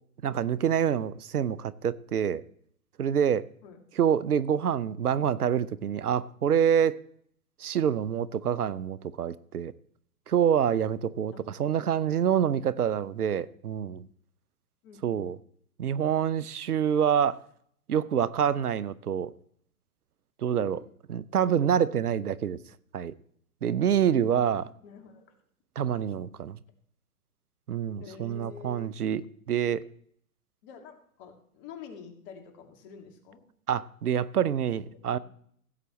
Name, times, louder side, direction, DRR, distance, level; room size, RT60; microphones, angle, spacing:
voice 1, 0.2-2.4 3.0-3.4 4.0-7.0 7.6-9.7 10.3-14.1 15.0-15.4 15.8-17.4 17.9-19.3 20.4-20.8 21.1-22.6 22.9-23.1 23.6-24.7 25.8-26.6 27.7-29.8 33.7-35.2, right 8 dB, 85° right, 0.6 m, -26 dB
voice 2, 14.8-15.2 20.6-20.8 24.3-25.3 28.0-28.9 30.6-33.4 34.7-35.2, left 6 dB, 35° left, 2.2 m, -48 dB
16.0 x 8.0 x 3.1 m
hypercardioid pair, 120°, 44 cm